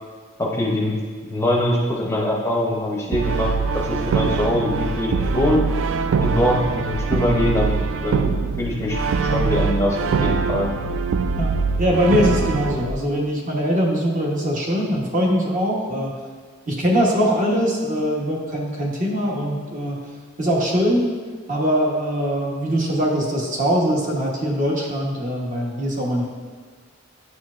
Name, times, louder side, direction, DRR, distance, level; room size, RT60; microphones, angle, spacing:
voice 1, 0.4-1.0 1.3-5.7 6.2-10.7, left 1 dB, 15° left, -2 dB, 0.6 m, -23 dB
Brass instrument, 3.1-12.9, right 4 dB, 65° right, 0.3 m, -23 dB
voice 2, 11.4-16.1 16.7-20.0 20.4-21.1 21.5-26.3, equal, 40° right, -1 dB, 1.0 m, -22 dB
9.3 x 4.4 x 2.4 m, 1.5 s
head